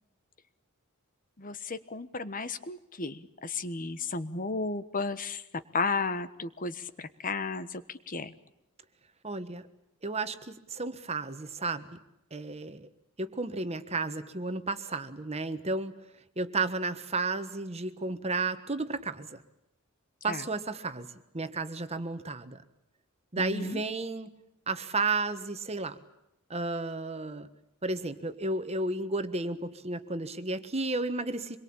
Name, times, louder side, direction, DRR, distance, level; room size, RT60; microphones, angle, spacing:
voice 1, 1.4-5.4 5.7-8.3 20.3-20.4 23.4-23.8, left 3 dB, 40° left, 13 dB, 1.3 m, -34 dB
voice 2, 9.2-9.7 10.0-11.9 12.3-12.9 13.2-15.9 16.4-19.4 20.2-21.1 21.3-22.6 23.3-24.3 24.7-26.0 26.5-27.5 27.8-31.6, right 3 dB, 30° right, 10 dB, 1.4 m, -33 dB
26.0 x 22.5 x 8.8 m, 0.86 s
head